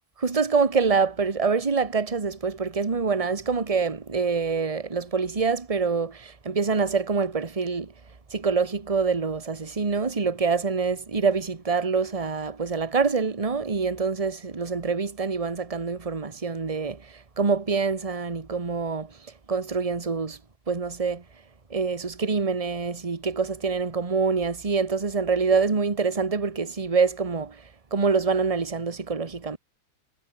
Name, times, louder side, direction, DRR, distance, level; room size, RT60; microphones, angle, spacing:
voice 1, 0.2-7.9 8.3-19.1 19.5-20.4 20.7-21.2 21.7-27.6 27.9-29.6, right 5 dB, 20° right, 1.4 m, -25 dB
omnidirectional pair, 2.2 m